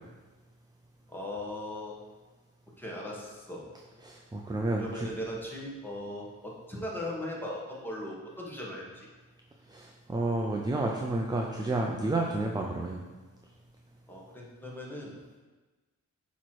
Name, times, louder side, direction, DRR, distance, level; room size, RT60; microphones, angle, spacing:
voice 1, 1.1-2.0 2.8-3.7 4.8-9.1 14.1-15.4, left 1 dB, 5° left, -4 dB, 1.4 m, -39 dB
voice 2, 4.0-5.1 9.7-13.0, right 2 dB, 15° right, 0 dB, 0.5 m, -30 dB
8.0 x 3.1 x 4.6 m, 1.3 s
cardioid pair, 105°, 32 cm